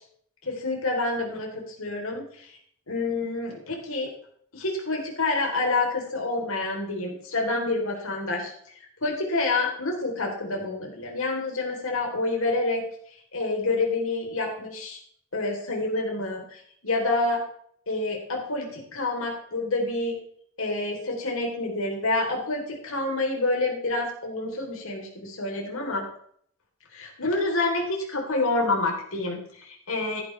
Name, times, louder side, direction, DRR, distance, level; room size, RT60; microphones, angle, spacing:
voice 1, 0.4-2.6 2.9-4.1 4.5-8.5 9.0-12.8 13.3-15.0 15.3-17.4 17.9-20.2 20.6-26.1 26.9-30.2, left 2 dB, 80° left, 0 dB, 3.5 m, -28 dB
14.0 x 11.5 x 3.3 m, 0.62 s
head